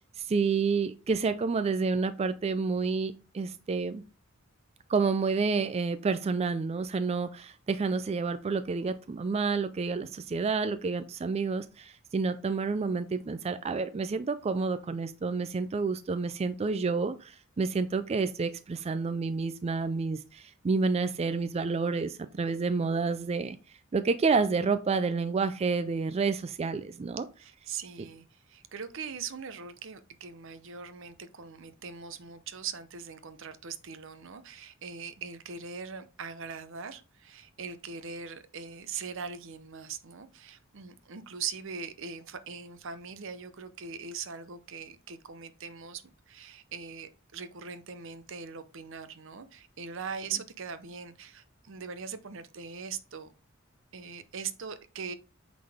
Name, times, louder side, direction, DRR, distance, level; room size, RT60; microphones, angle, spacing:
voice 1, 0.2-4.0 4.9-23.6 23.9-27.2, right 4 dB, 30° right, 0.3 m, -29 dB
voice 2, 27.4-53.3 53.9-55.1, right 6 dB, 65° right, 0.7 m, -41 dB
8.5 x 3.9 x 3.5 m
head